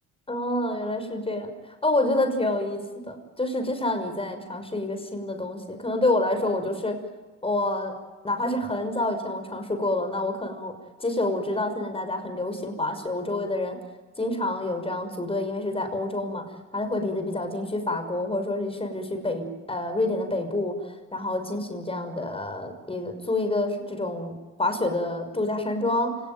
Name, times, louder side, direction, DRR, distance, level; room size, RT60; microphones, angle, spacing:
voice 1, 0.3-1.5 1.8-6.9 7.4-7.9 8.2-10.7 11.0-13.8 14.2-16.4 16.7-24.3 24.6-26.1, left 2 dB, 20° left, 6 dB, 6.0 m, -28 dB
29.0 x 18.5 x 9.3 m, 1.3 s
cardioid pair, 90°, 30 cm